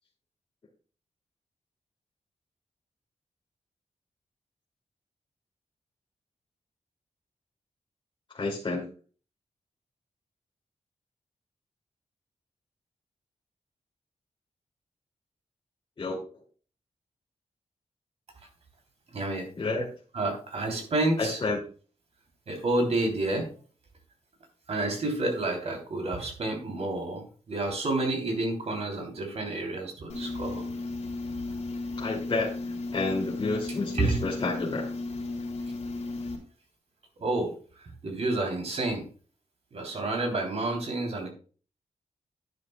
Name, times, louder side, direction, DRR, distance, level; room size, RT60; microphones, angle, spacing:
voice 1, 8.3-8.9 16.0-16.4 19.6-19.8 21.2-21.6 32.0-32.5 32.9-34.9, left 3 dB, 40° left, -4 dB, 2.5 m, -30 dB
voice 2, 19.1-19.5 20.1-21.4 22.5-23.5 24.7-30.7 33.9-34.2 37.2-39.1 39.7-41.3, right 2 dB, 60° right, 3 dB, 3.1 m, -29 dB
sound 1, 30.1-36.4, left 2 dB, 65° left, 3.1 m, -35 dB
11.0 x 9.9 x 2.2 m, 0.39 s
wide cardioid pair, 140°, 12 cm